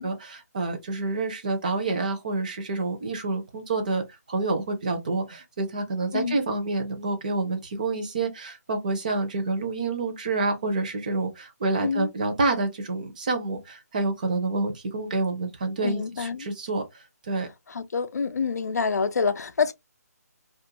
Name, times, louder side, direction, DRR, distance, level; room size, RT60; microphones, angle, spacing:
voice 1, 0.0-16.8 17.3-17.5, right 3 dB, 30° right, 0.5 m, -28 dB
voice 2, 15.8-16.5 17.7-19.7, left 5 dB, 70° left, 0.4 m, -27 dB
2.4 x 2.1 x 2.8 m
hypercardioid pair, 170°, 9 cm